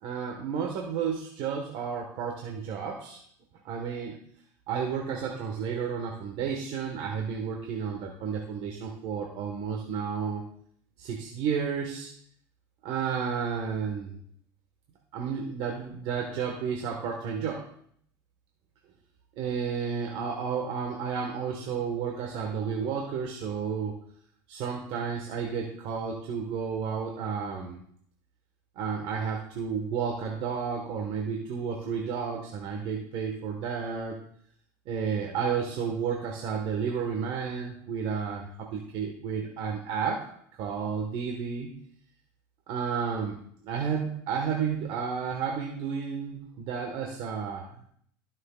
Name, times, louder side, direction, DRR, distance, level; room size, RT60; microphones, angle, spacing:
voice 1, 0.0-3.2 3.6-4.2 4.7-10.4 11.0-12.1 12.8-14.2 15.1-17.6 19.4-24.0 24.5-27.8 28.7-34.2 34.9-40.3 40.6-41.7 42.7-43.4 43.6-47.9, right 6 dB, 65° right, 1 dB, 1.4 m, -32 dB
18.0 x 6.4 x 2.4 m, 0.66 s
supercardioid pair, 100°, 10 cm